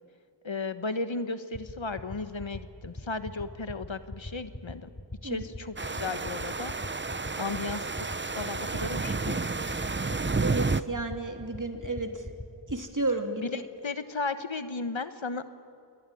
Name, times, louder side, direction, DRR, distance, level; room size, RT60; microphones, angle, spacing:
voice 1, 0.4-4.9 5.2-6.7 7.4-7.9 8.3-9.4 13.4-15.4, left 3 dB, 80° left, 10 dB, 1.3 m, -35 dB
sound 1, 1.5-12.8, left 1 dB, 35° left, 4.8 m, -40 dB
sound 2, 5.8-10.8, right 3 dB, 25° right, 0.7 m, -31 dB
voice 2, 10.4-12.2 12.7-13.4, right 2 dB, 40° right, 4 dB, 3.0 m, -32 dB
28.0 x 21.0 x 9.3 m, 2.4 s
wide cardioid pair, 40°, 46 cm